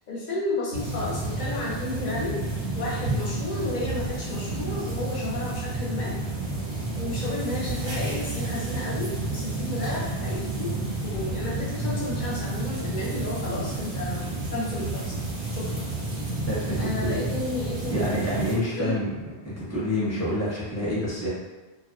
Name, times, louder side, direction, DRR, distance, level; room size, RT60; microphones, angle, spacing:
voice 1, 0.1-2.4 2.7-6.1 7.0-10.8 11.0-15.2 15.5-15.9 16.8-18.1 18.7-19.0, left 2 dB, 50° left, -5 dB, 0.8 m, -32 dB
sound 1, 0.7-18.6, right 2 dB, 85° right, 1.2 m, -30 dB
voice 2, 16.5-17.2 17.9-19.1 19.4-21.3, left 1 dB, 15° left, -9 dB, 0.8 m, -28 dB
2.6 x 2.2 x 2.3 m, 1.2 s
omnidirectional pair, 1.1 m